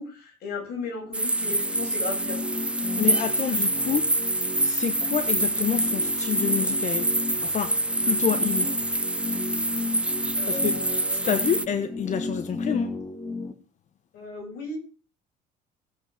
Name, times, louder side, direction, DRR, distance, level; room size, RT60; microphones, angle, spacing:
voice 1, 0.0-2.4 10.3-11.3 14.1-14.8, left 3 dB, 70° left, 7.8 m, -36 dB
sound 1, 1.0-13.5, left 3 dB, 20° left, 2.0 m, -34 dB
sound 2, 1.1-11.6, right 2 dB, 5° right, 0.6 m, -26 dB
voice 2, 2.8-7.1 7.4-8.7 10.2-10.8 11.1-12.9, left 8 dB, 45° left, 1.1 m, -29 dB
17.5 x 8.0 x 5.9 m
cardioid pair, 110°, 17 cm